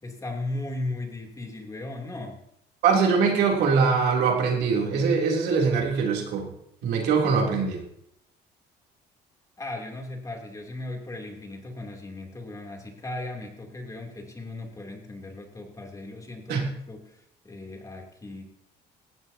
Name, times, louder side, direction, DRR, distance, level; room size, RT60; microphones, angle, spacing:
voice 1, 0.0-2.4 9.6-18.5, left 2 dB, 20° left, 2 dB, 3.1 m, -37 dB
voice 2, 2.8-6.5 6.8-7.8 16.5-16.7, right 5 dB, 75° right, 0 dB, 3.2 m, -22 dB
17.5 x 15.5 x 2.9 m, 0.77 s
cardioid pair, 110°, 17 cm